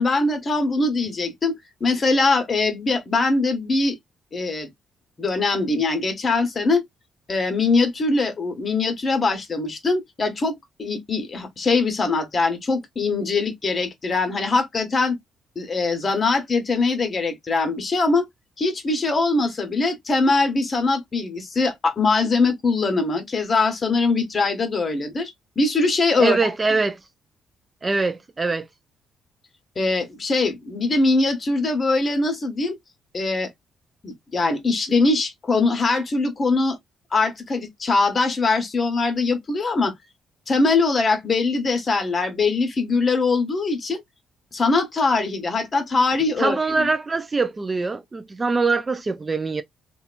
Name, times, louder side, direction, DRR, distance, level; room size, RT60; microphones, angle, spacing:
voice 1, 0.0-4.0 4.3-4.7 5.2-6.8 7.3-15.2 15.6-18.2 18.6-26.4 29.8-32.8 33.1-33.5 34.0-36.8 37.1-39.9 40.5-44.0 44.5-46.9, left 3 dB, 35° left, 1.1 m, -22 dB
voice 2, 26.2-27.0 27.8-28.7 46.4-49.6, right 3 dB, 25° right, 0.3 m, -23 dB
2.8 x 2.3 x 2.4 m
cardioid pair, 90°, 0 cm